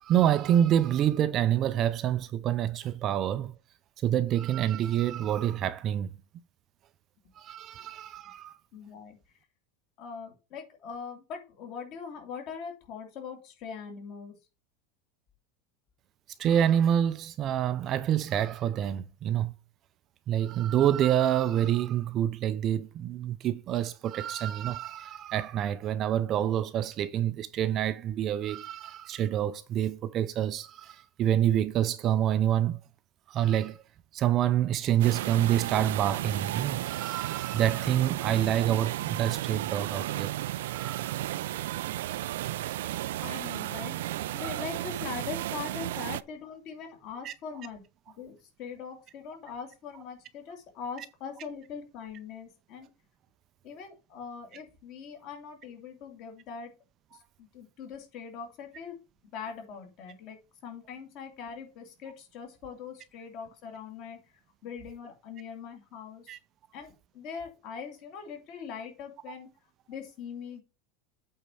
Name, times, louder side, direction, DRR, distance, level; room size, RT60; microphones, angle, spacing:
voice 1, 0.0-3.5 4.0-6.1 7.4-8.5 16.4-19.5 20.3-32.8 33.3-33.8 34.1-40.3 40.7-41.2 44.4-44.6 47.2-47.3 66.3-66.4, right 10 dB, 30° right, 0.5 m, -27 dB
voice 2, 8.7-9.2 10.0-14.3 42.5-42.9 43.2-47.8 48.2-52.9 53.6-56.7 57.1-59.0 59.3-64.3 64.6-66.4 66.7-69.5 69.9-70.6, left 6 dB, 40° left, 2.6 m, -42 dB
sound 1, 35.0-46.2, right 14 dB, 90° right, 0.4 m, -33 dB
8.2 x 4.4 x 4.8 m
supercardioid pair, 170°, 0 cm